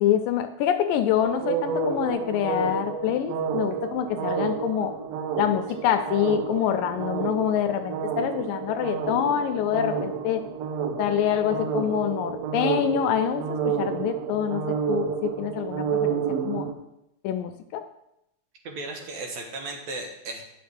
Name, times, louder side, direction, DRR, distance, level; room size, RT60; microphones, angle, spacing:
voice 1, 0.0-4.9 5.4-10.4 11.0-16.7 17.2-17.8, left 10 dB, 85° left, 8 dB, 2.2 m, -26 dB
sound 1, 1.2-16.7, right 7 dB, 90° right, 1.4 m, -30 dB
voice 2, 18.6-20.4, right 2 dB, 65° right, 2 dB, 2.1 m, -35 dB
10.0 x 6.4 x 3.5 m, 0.83 s
omnidirectional pair, 3.9 m